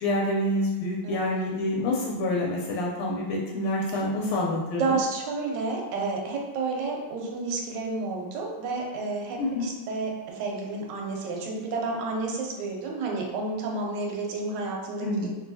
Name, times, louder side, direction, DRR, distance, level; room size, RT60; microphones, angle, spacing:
voice 1, 0.0-5.0 9.4-9.7 15.0-15.3, left 1 dB, 90° left, -3 dB, 1.4 m, -27 dB
voice 2, 1.0-1.6 4.8-15.3, right 3 dB, 75° right, -1 dB, 1.1 m, -31 dB
3.1 x 2.6 x 2.6 m, 1.2 s
omnidirectional pair, 2.3 m